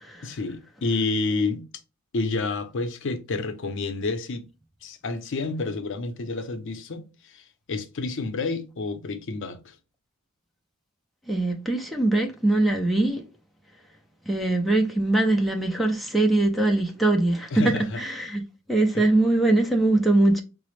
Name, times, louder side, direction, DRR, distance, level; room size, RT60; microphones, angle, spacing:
voice 1, 0.2-1.6 2.1-4.4 4.8-9.7 17.5-18.0 18.9-19.0, left 3 dB, 60° left, 0.6 m, -29 dB
voice 2, 11.3-13.2 14.3-18.4 18.7-20.4, right 2 dB, ahead, 0.4 m, -22 dB
4.8 x 2.0 x 3.1 m
head